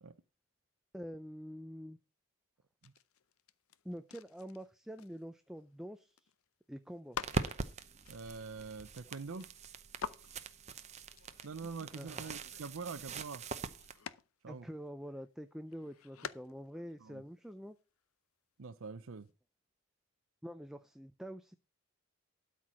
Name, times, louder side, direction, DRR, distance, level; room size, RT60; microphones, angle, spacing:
voice 1, 0.9-2.0 3.8-6.3 6.7-7.2 11.9-12.4 14.5-17.8 20.4-21.6, equal, ahead, 0.4 m, -46 dB
sound 1, 2.8-6.5 6.9-14.4 14.7-15.3 15.7-16.9 17.1-17.2 17.4-18.0 19.2-19.3, left 7 dB, 80° left, 0.6 m, -49 dB
sound 2, 7.2-13.9, right 3 dB, 30° right, 0.7 m, -42 dB
voice 2, 8.1-9.5 11.4-13.4 14.4-14.6 17.0-17.2 18.6-19.3, right 4 dB, 70° right, 0.6 m, -44 dB
12.5 x 4.6 x 6.2 m
head